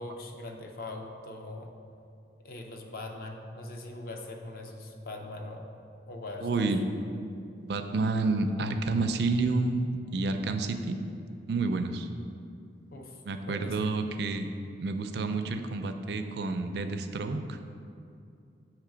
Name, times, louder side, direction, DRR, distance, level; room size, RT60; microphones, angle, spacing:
voice 1, 0.0-1.7 2.4-5.7 6.1-6.8 12.9-13.9, left 2 dB, 50° left, 3 dB, 0.6 m, -41 dB
voice 2, 6.4-6.8 7.6-11.0 11.5-12.1 13.3-14.5 14.8-17.6, right 3 dB, 60° right, 7 dB, 0.4 m, -29 dB
7.4 x 3.1 x 5.0 m, 2.6 s
head